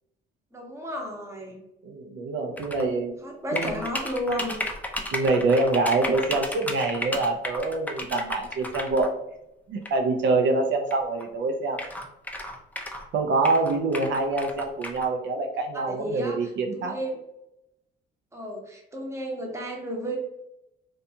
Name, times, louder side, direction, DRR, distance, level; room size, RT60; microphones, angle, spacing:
voice 1, 0.5-1.6 3.2-4.6 15.7-17.2 18.3-20.2, equal, 15° right, 0 dB, 0.7 m, -33 dB
voice 2, 1.8-3.2 3.5-3.7 5.1-9.2 9.7-11.8 13.1-17.0, right 3 dB, 70° right, 4 dB, 0.4 m, -25 dB
sound 1, 2.6-2.8 3.6-9.1 9.9-10.0 10.9-11.0 11.2-11.3 11.7-13.1 13.4-15.1, left 1 dB, 10° left, 0.4 m, -33 dB
2.5 x 2.3 x 2.7 m, 0.85 s
cardioid pair, 90°, 20 cm